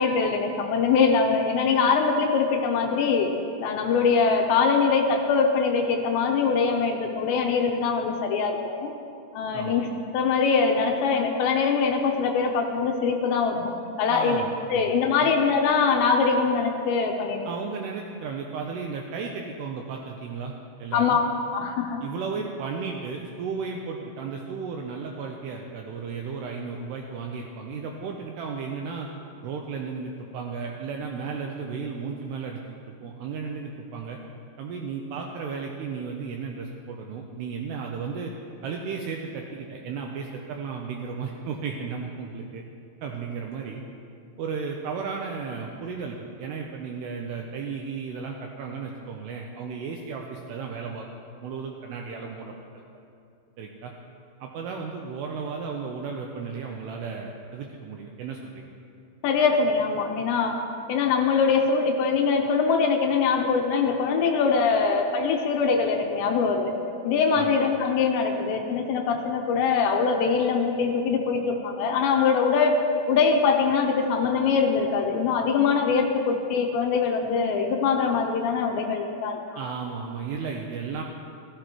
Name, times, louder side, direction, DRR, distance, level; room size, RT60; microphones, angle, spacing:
voice 1, 0.0-3.3 3.6-8.9 9.3-9.9 10.1-13.7 14.0-14.4 14.7-17.4 20.9-21.2 21.5-22.0 59.2-60.6 60.9-66.7 67.0-72.8 73.1-79.7, left 5 dB, 80° left, 2 dB, 2.8 m, -23 dB
voice 2, 9.5-9.8 14.1-14.9 15.2-15.3 17.4-20.5 20.8-21.2 22.0-29.1 29.4-34.2 34.6-38.3 38.6-42.6 43.0-43.8 44.4-51.1 51.4-52.8 53.6-53.9 54.4-58.8 67.4-67.5 79.6-81.0, right 5 dB, 90° right, 1 dB, 2.4 m, -34 dB
14.5 x 14.5 x 3.0 m, 2.5 s
omnidirectional pair, 5.5 m